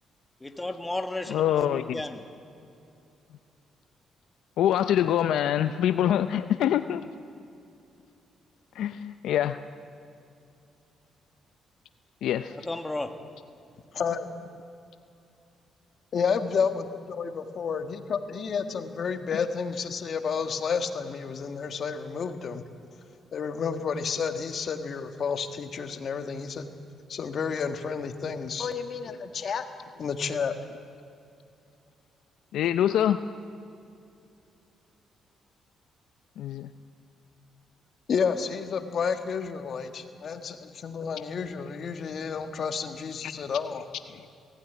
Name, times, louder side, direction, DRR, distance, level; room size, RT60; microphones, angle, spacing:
voice 1, 0.4-2.2 12.5-13.1, left 2 dB, 15° left, 6 dB, 1.6 m, -34 dB
voice 2, 1.3-2.0 4.6-7.0 8.7-9.6 12.2-12.6 19.3-19.4 32.5-33.2 36.4-36.7 43.2-43.3, left 10 dB, 80° left, 11 dB, 0.5 m, -25 dB
voice 3, 13.9-14.3 16.1-22.6 23.3-26.7 27.1-29.7 30.0-30.5 38.1-43.8, left 6 dB, 55° left, 7 dB, 1.6 m, -30 dB
19.0 x 16.0 x 9.3 m, 2.6 s
cardioid pair, 90°, 0 cm